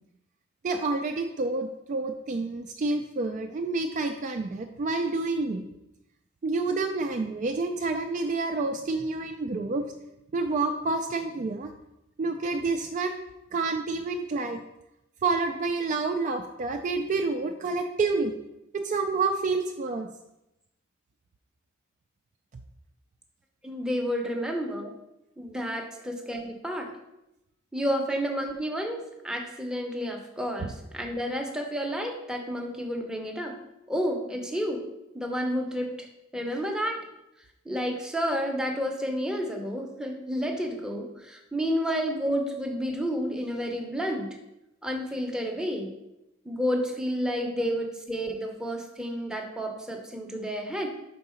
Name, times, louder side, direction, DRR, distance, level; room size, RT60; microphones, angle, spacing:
voice 1, 0.6-5.6 6.4-9.8 10.3-11.7 12.2-13.2 13.5-14.6 15.2-18.3 18.8-20.1 24.3-24.5 25.9-26.0 30.6-30.7, right 3 dB, 35° right, 5 dB, 0.3 m, -28 dB
voice 2, 23.6-24.9 25.4-26.9 27.7-33.6 33.9-34.8 35.1-36.1 36.3-37.0 37.7-44.3 44.8-45.9 46.4-50.9, equal, 5° right, 1 dB, 0.6 m, -30 dB
4.5 x 3.8 x 5.5 m, 0.89 s
head